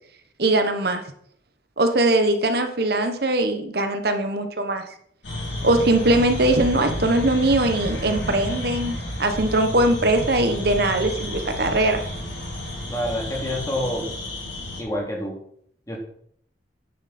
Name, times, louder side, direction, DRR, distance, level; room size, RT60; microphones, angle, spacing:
voice 1, 0.4-1.0 1.8-4.9 5.6-12.0, right 2 dB, 60° right, 7 dB, 1.1 m, -21 dB
sound 1, 5.2-14.8, left 1 dB, 85° left, 5.1 m, -31 dB
voice 2, 12.9-14.1 14.8-15.4 15.9-16.0, left 1 dB, 20° left, -1 dB, 2.8 m, -27 dB
10.0 x 9.9 x 4.3 m, 0.66 s
head